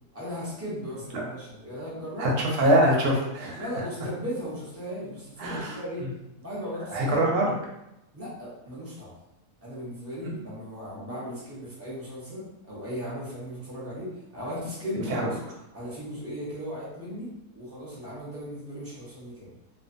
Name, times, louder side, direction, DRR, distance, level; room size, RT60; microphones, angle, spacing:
voice 1, 0.1-2.3 3.6-6.0 6.4-7.2 8.1-9.1 9.6-15.3 15.7-19.5, equal, 15° right, -8 dB, 0.5 m, -37 dB
voice 2, 2.2-3.7 5.4-6.1 6.9-7.5 10.2-10.4 14.9-15.3, right 1 dB, 75° right, -1 dB, 1.1 m, -24 dB
2.7 x 2.2 x 2.5 m, 0.89 s
omnidirectional pair, 1.7 m